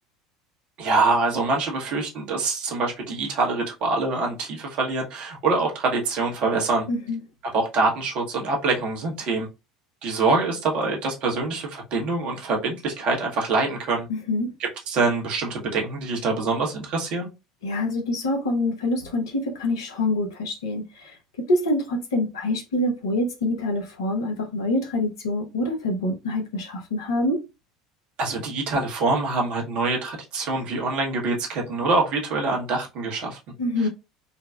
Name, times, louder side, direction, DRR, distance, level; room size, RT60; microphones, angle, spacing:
voice 1, 0.8-6.8 7.5-9.5 10.0-14.1 14.9-17.3 28.2-33.4, right 3 dB, 50° right, 1.1 m, -25 dB
voice 2, 6.9-7.2 14.1-14.5 17.6-21.2 21.5-27.4 33.6-33.9, left 1 dB, 75° left, 0.9 m, -25 dB
3.8 x 2.2 x 2.3 m
figure-of-eight pair, 70°, 2 cm